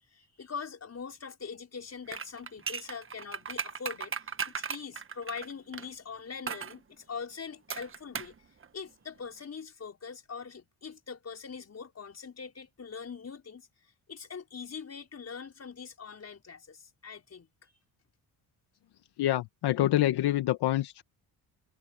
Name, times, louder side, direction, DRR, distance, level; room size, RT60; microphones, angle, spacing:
voice 1, 0.0-8.3 8.7-13.7 14.1-17.7, left 6 dB, 40° left, 5.6 m, -42 dB
sound 1, 2.1-5.9 6.5-6.8 7.7-8.4 8.6-8.7, right 6 dB, 30° right, 1.4 m, -36 dB
voice 2, 19.2-21.0, left 14 dB, 70° left, 1.6 m, -26 dB
supercardioid pair, 75°, 41 cm